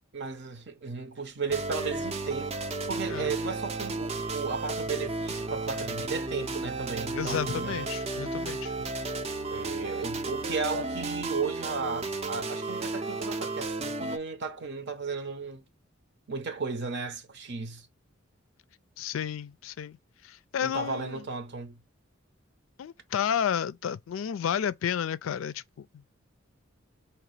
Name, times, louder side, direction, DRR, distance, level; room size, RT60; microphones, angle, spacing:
voice 1, 0.1-7.8 9.5-15.6 16.3-17.9 20.6-21.8, right 4 dB, 60° right, 0.8 m, -35 dB
sound 1, 1.5-14.2, right 3 dB, 30° right, 0.5 m, -33 dB
voice 2, 7.1-8.7 19.0-20.0 20.2-21.2 22.8-26.0, left 8 dB, 75° left, 0.4 m, -32 dB
4.8 x 2.9 x 3.3 m
head